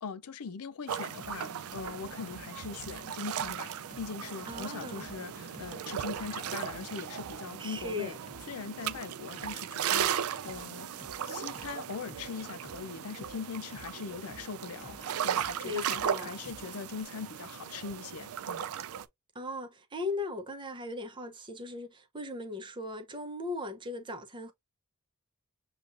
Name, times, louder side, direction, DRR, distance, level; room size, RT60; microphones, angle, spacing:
voice 1, 0.0-8.2 8.5-10.9 11.2-18.7, left 5 dB, 80° left, 0.5 m, -41 dB
sound 1, 0.9-19.0, right 9 dB, 75° right, 0.4 m, -37 dB
sound 2, 1.2-17.0, left 1 dB, 30° left, 0.9 m, -53 dB
voice 2, 4.5-5.1 7.6-8.2 15.6-16.4 19.3-24.5, left 2 dB, 20° right, 0.7 m, -38 dB
6.8 x 2.4 x 2.5 m
head